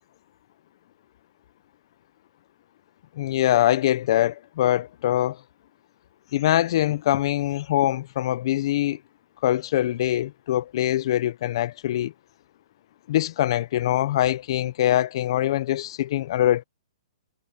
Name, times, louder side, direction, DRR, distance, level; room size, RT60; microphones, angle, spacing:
voice 1, 3.2-5.4 6.3-9.0 9.4-12.1 13.1-16.6, left 13 dB, 50° left, 1.0 m, -23 dB
hypercardioid pair, 145°, 4 cm